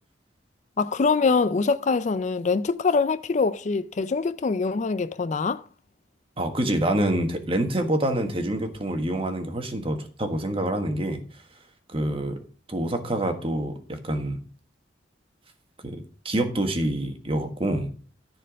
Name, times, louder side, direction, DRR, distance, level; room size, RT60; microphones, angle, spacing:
voice 1, 0.8-5.6, left 4 dB, 40° left, 0.4 m, -24 dB
voice 2, 6.4-11.2 11.9-12.4 12.7-14.4 15.8-17.9, right 1 dB, 30° right, 1.5 m, -26 dB
13.5 x 4.5 x 6.3 m
head